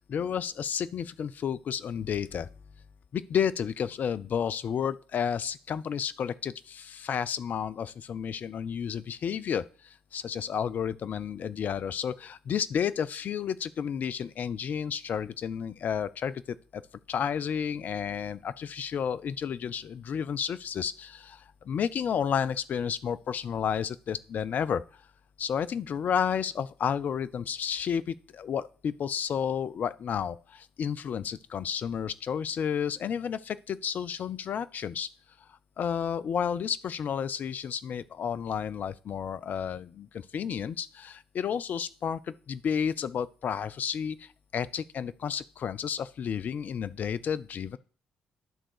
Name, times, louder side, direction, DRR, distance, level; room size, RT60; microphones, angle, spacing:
voice 1, 0.0-2.5 3.1-16.8 17.1-24.8 25.4-35.1 35.5-47.8, left 7 dB, 55° left, 0.6 m, -31 dB
11.0 x 3.7 x 6.5 m
hypercardioid pair, 45°, 3 cm